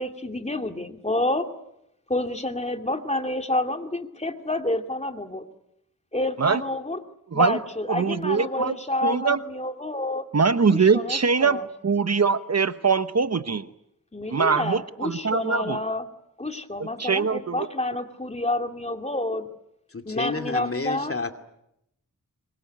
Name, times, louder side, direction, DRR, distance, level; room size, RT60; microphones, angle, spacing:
voice 1, 0.0-1.5 2.1-5.5 6.1-7.0 7.3-10.3 10.7-11.6 14.1-16.1 16.4-19.5 20.1-21.1, left 1 dB, 20° left, 5 dB, 2.4 m, -29 dB
voice 2, 7.9-8.7 9.0-9.4 10.3-13.7 14.3-15.8 16.8-17.7, right 5 dB, 50° right, 12 dB, 1.0 m, -23 dB
voice 3, 19.9-21.3, left 3 dB, 40° left, 7 dB, 2.5 m, -30 dB
25.5 x 22.5 x 9.4 m, 0.82 s
wide cardioid pair, 80°, 34 cm